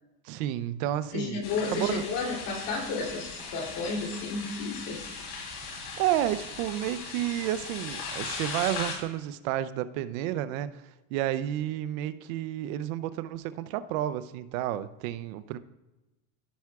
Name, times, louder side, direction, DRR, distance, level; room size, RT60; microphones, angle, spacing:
voice 1, 0.2-1.4 1.7-2.1 5.7-10.8 11.1-15.6, right 12 dB, 70° right, 13 dB, 0.7 m, -31 dB
voice 2, 1.1-5.0, left 3 dB, 50° left, -1 dB, 3.1 m, -32 dB
sound 1, 1.4-8.9, left 4 dB, 80° left, 3.3 m, -38 dB
15.5 x 5.9 x 2.4 m, 1.0 s
supercardioid pair, 135°, 43 cm